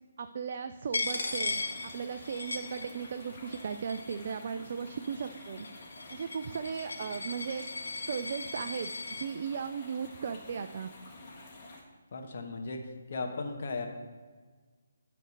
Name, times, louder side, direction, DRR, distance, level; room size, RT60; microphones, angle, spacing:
voice 1, 0.2-5.7 6.1-7.7 8.1-10.9, right 6 dB, 45° right, 8 dB, 0.3 m, -37 dB
Coin (dropping), 0.9-3.3 3.5-4.3 5.0-9.3, left 3 dB, 70° left, 1.1 m, -37 dB
sound 1, 1.1-11.8, left 2 dB, 30° left, 1.7 m, -50 dB
voice 2, 12.1-12.8 13.1-13.9, left 3 dB, 50° left, 3 dB, 1.1 m, -36 dB
9.1 x 3.4 x 6.5 m, 1.5 s
figure-of-eight pair, 145°, 0 cm